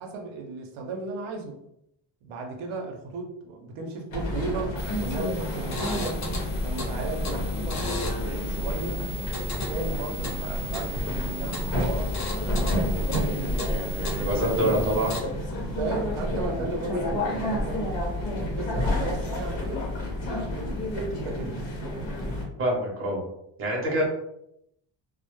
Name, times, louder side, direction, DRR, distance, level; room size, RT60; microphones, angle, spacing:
voice 1, 0.0-1.6 2.2-6.2 6.6-9.0 9.5-13.8 14.2-14.7 15.8-17.9 18.3-19.9 20.2-21.6 23.8-24.0, right 3 dB, 80° right, 2 dB, 0.6 m, -35 dB
sound 1, 4.1-22.5, left 1 dB, 65° left, 0.8 m, -30 dB
sound 2, 4.8-15.2, left 1 dB, 40° left, 0.4 m, -35 dB
voice 2, 14.3-15.2 22.6-23.2 23.6-24.1, equal, 30° right, -3 dB, 0.7 m, -25 dB
2.1 x 2.0 x 2.9 m, 0.78 s
cardioid pair, 170°, 48 cm